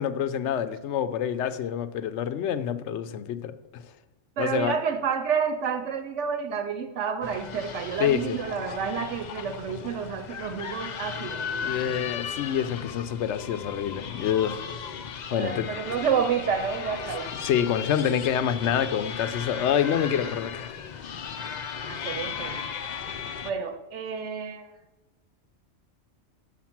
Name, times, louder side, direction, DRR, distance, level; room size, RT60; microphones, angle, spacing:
voice 1, 0.0-3.8 4.4-4.7 8.0-8.4 11.6-14.6 15.3-15.7 17.4-20.7, left 9 dB, 70° left, 12 dB, 0.9 m, -27 dB
voice 2, 4.4-11.8 15.3-17.3 21.9-22.6 23.4-24.7, right 6 dB, 75° right, 7 dB, 0.9 m, -29 dB
sound 1, 7.2-23.5, left 7 dB, 55° left, 0.5 m, -36 dB
6.6 x 5.9 x 5.8 m, 1.1 s
omnidirectional pair, 1.3 m